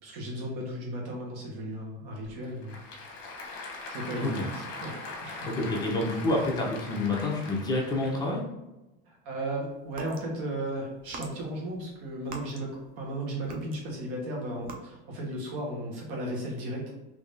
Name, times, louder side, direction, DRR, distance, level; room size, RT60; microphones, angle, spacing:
voice 1, 0.0-3.2 3.9-5.5 9.1-12.7 13.0-17.0, right 1 dB, 70° right, -1 dB, 1.3 m, -35 dB
Applause / Crowd, 2.2-8.4, left 3 dB, 55° left, 0.9 m, -41 dB
voice 2, 5.5-8.4, left 2 dB, 15° left, -2 dB, 0.8 m, -28 dB
sound 1, 9.8-10.3 11.0-13.1 13.4-14.1 14.5-14.8, right 3 dB, 30° right, 0.5 m, -43 dB
3.6 x 3.0 x 2.6 m, 1.0 s
cardioid pair, 140°, 30 cm